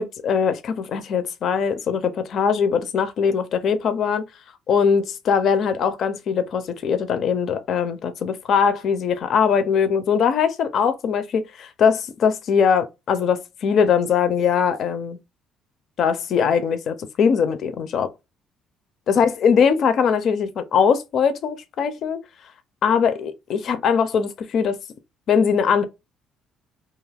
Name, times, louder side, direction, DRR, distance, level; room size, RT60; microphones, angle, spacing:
voice 1, 0.0-4.2 4.7-15.2 16.0-18.1 19.1-22.2 22.8-24.8 25.3-25.8, left 6 dB, 55° left, 0.4 m, -21 dB
2.6 x 2.3 x 3.3 m
cardioid pair, 115°, 0 cm